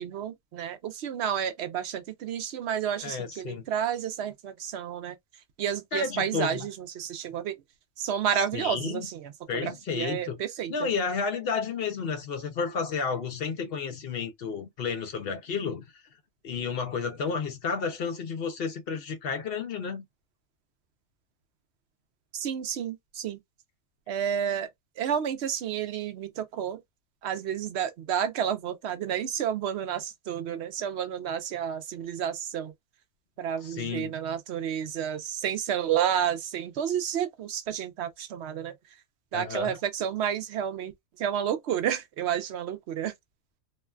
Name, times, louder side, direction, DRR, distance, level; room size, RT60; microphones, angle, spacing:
voice 1, 0.0-5.2 5.6-7.6 8.0-10.9 22.3-23.4 24.1-24.7 25.0-26.8 27.2-32.7 33.4-38.8 39.3-40.9 41.2-43.1, right 9 dB, 65° right, 0.7 m, -30 dB
voice 2, 3.0-3.6 5.9-6.7 8.5-9.1 9.5-10.4 10.7-16.0 16.4-20.0 33.6-34.1 39.3-39.8, left 5 dB, 60° left, 0.7 m, -31 dB
3.1 x 2.2 x 2.2 m
omnidirectional pair, 1.4 m